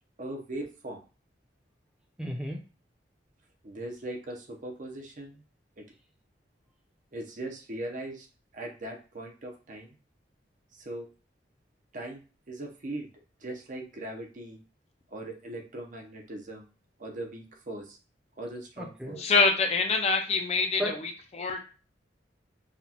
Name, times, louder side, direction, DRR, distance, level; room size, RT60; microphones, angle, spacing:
voice 1, 0.2-1.0 3.6-5.4 5.8-5.9 7.1-8.3 8.5-9.9 10.7-11.1 11.9-12.2 12.5-13.1 13.4-14.6 15.1-16.6 17.0-18.0 18.4-19.2, right 1 dB, 45° right, 2 dB, 0.7 m, -39 dB
voice 2, 2.2-2.6 18.8-19.2 20.8-21.0, equal, 5° right, 0 dB, 0.7 m, -33 dB
voice 3, 19.2-21.6, left 4 dB, 35° left, 5 dB, 0.5 m, -25 dB
5.8 x 2.3 x 2.9 m, 0.35 s
head